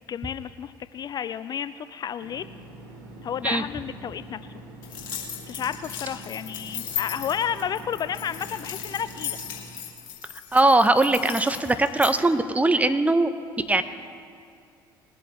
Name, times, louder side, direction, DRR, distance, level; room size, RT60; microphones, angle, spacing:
voice 1, 0.1-2.5 3.2-4.4 5.4-9.4, left 8 dB, 40° left, 14 dB, 0.3 m, -31 dB
sound 1, 2.2-9.6, right 1 dB, 70° right, 2.0 m, -44 dB
sound 2, 4.8-12.1, left 9 dB, 75° left, 1.9 m, -36 dB
voice 2, 10.5-13.3 13.7-13.8, right 2 dB, 15° right, 10 dB, 0.8 m, -20 dB
20.5 x 8.2 x 4.1 m, 2.4 s
hypercardioid pair, 60°, 11 cm